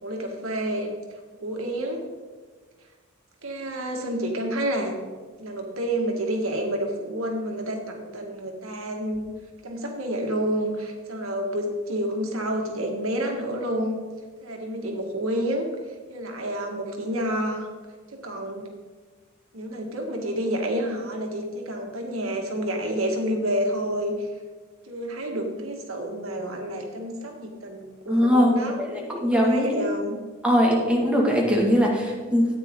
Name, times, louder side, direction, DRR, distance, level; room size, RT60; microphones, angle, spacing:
voice 1, 0.0-0.9 1.4-2.0 3.4-5.0 5.4-9.3 9.6-14.0 14.4-15.7 16.1-17.7 18.1-18.7 19.5-24.2 24.8-28.8 29.4-30.2, right 1 dB, 90° right, 2 dB, 1.8 m, -29 dB
voice 2, 28.1-28.5 28.8-29.8 30.4-32.5, equal, 5° right, -2 dB, 1.9 m, -21 dB
14.0 x 9.1 x 3.7 m, 1.4 s
head